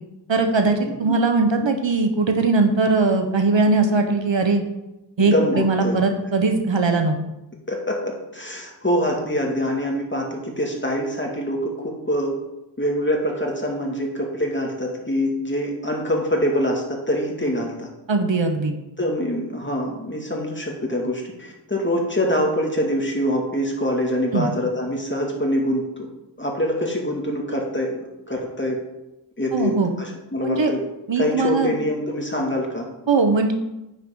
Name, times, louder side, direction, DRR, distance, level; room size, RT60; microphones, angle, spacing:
voice 1, 0.3-4.6 5.2-7.2 18.1-18.7 24.3-24.5 29.5-29.9 30.4-30.7 31.1-31.8 33.1-33.5, right 3 dB, 75° right, 5 dB, 1.1 m, -20 dB
voice 2, 5.2-6.0 7.7-12.3 12.8-17.9 19.0-26.1 26.4-28.8 29.4-29.7 30.0-30.8 31.2-32.9, equal, 25° left, 0 dB, 2.2 m, -24 dB
9.6 x 6.5 x 3.8 m, 0.95 s
wide cardioid pair, 40°, 45 cm